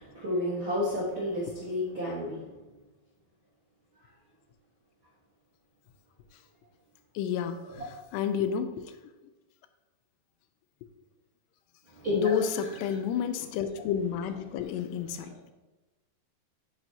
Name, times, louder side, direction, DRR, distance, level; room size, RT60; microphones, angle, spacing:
voice 1, 0.0-2.4 12.0-12.4, left 1 dB, 85° right, -6 dB, 1.1 m, -30 dB
voice 2, 7.2-8.9 12.1-15.5, left 8 dB, 90° left, 9 dB, 2.7 m, -30 dB
8.9 x 6.0 x 2.9 m, 1.1 s
omnidirectional pair, 4.8 m